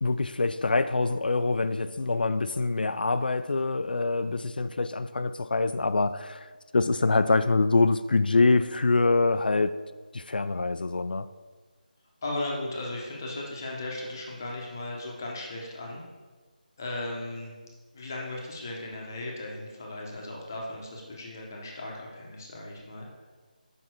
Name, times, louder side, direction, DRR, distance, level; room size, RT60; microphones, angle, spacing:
voice 1, 0.0-9.8 10.1-11.3, left 3 dB, 85° left, 0.4 m, -25 dB
voice 2, 12.2-16.0 16.8-17.6 17.9-23.1, left 2 dB, 20° left, 0.8 m, -36 dB
6.4 x 5.4 x 4.4 m
figure-of-eight pair, 175°, 5 cm